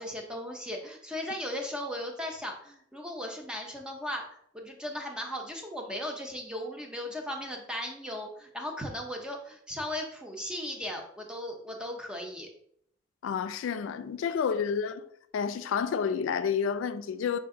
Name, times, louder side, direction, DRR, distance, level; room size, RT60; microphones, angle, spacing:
voice 1, 0.0-4.2 4.5-12.5, left 1 dB, 5° right, 0.6 m, -37 dB
voice 2, 13.2-15.0 15.3-17.4, left 6 dB, 80° left, 0.3 m, -30 dB
4.9 x 2.5 x 3.7 m
head